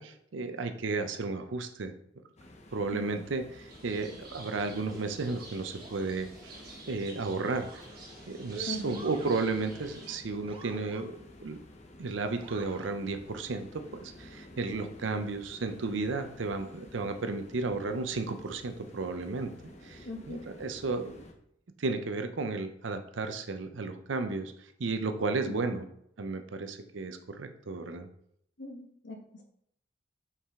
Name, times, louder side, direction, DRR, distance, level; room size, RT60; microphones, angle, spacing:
voice 1, 0.0-1.9 2.7-6.6 6.9-7.7 8.3-11.6 12.0-19.5 19.8-21.2 21.8-24.5 24.8-25.9 26.2-28.1, right 3 dB, 90° right, 8 dB, 0.6 m, -33 dB
sound 1, 2.4-21.3, left 1 dB, 35° left, 0.8 m, -52 dB
voice 2, 2.9-3.2 8.7-9.0 14.8-14.9 20.0-20.4 25.5-25.8 28.6-29.4, left 2 dB, 70° left, 2 dB, 1.2 m, -40 dB
sound 2, 3.7-10.1, right 1 dB, 55° right, 1.2 m, -49 dB
Motor vehicle (road) / Siren, 5.8-6.2 7.6-8.1 8.9-9.4 10.5-11.1 12.4-12.9, right 3 dB, 30° right, 0.7 m, -50 dB
5.6 x 4.8 x 3.7 m, 0.73 s
head